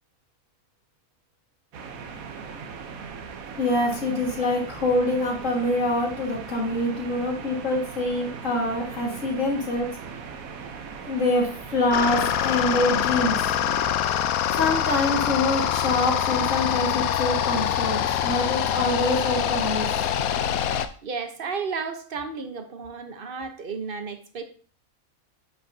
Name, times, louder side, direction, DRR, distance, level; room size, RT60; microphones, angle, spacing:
sound 1, 1.7-14.0, right 5 dB, 80° right, 1.2 m, -39 dB
voice 1, 3.6-9.9 11.0-13.4 14.6-19.9, left 2 dB, 65° left, 2.2 m, -25 dB
sound 2, 11.9-20.9, left 9 dB, 90° left, 1.1 m, -24 dB
voice 2, 21.0-24.4, right 5 dB, 45° right, 1.0 m, -33 dB
9.9 x 5.9 x 2.7 m
omnidirectional pair, 1.5 m